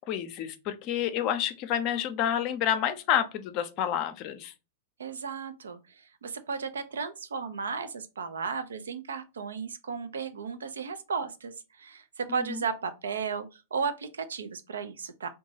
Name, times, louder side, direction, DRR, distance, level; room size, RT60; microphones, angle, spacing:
voice 1, 0.1-4.5 12.3-12.6, left 10 dB, 45° left, 0.5 m, -29 dB
voice 2, 5.0-15.3, right 5 dB, 85° right, 0.5 m, -34 dB
2.9 x 2.2 x 2.8 m
hypercardioid pair, 115°, 0 cm